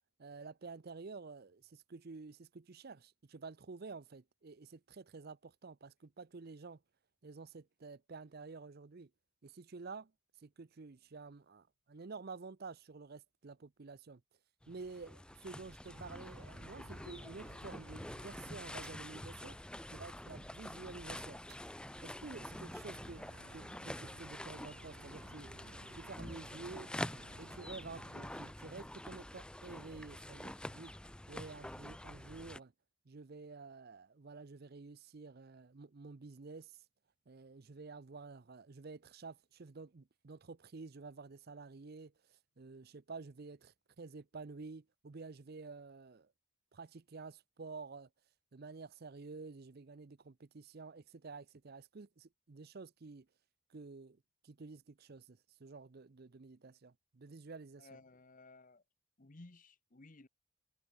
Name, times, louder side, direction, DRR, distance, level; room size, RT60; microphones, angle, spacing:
voice 1, 0.2-6.8 7.2-9.1 9.4-10.1 10.4-14.2 14.7-19.6 19.9-21.4 22.0-23.3 23.5-25.5 25.9-26.9 27.4-30.9 31.3-32.7 33.1-36.8 37.3-46.3 46.7-48.1 48.5-53.3 53.7-54.2 54.4-57.9, right 4 dB, 45° right, 0.6 m, -50 dB
sound 1, 14.6-32.6, left 1 dB, 5° left, 0.5 m, -47 dB
sound 2, 15.8-20.1 21.4-28.5, right 3 dB, 80° right, 1.2 m, -60 dB
voice 2, 57.8-58.8 59.2-60.3, left 2 dB, 35° left, 1.0 m, -57 dB
head